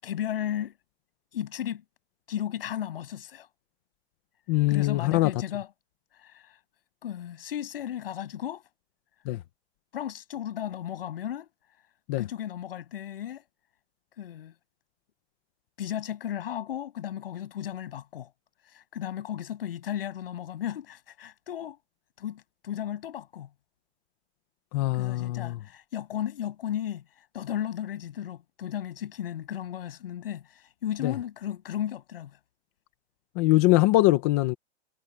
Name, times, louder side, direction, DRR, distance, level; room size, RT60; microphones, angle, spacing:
voice 1, 0.0-0.7 1.3-1.8 2.3-3.5 4.7-5.7 6.2-6.5 7.0-8.6 9.9-11.5 12.2-13.4 14.2-14.5 15.8-18.3 18.7-21.8 22.2-23.5 24.9-27.0 27.3-32.4, left 10 dB, 60° left, 7.9 m, -34 dB
voice 2, 4.5-5.3 9.3-9.4 12.1-12.2 24.7-25.6 31.0-31.1 33.4-34.5, left 18 dB, 15° left, 0.6 m, -22 dB
hypercardioid pair, 170°, 33 cm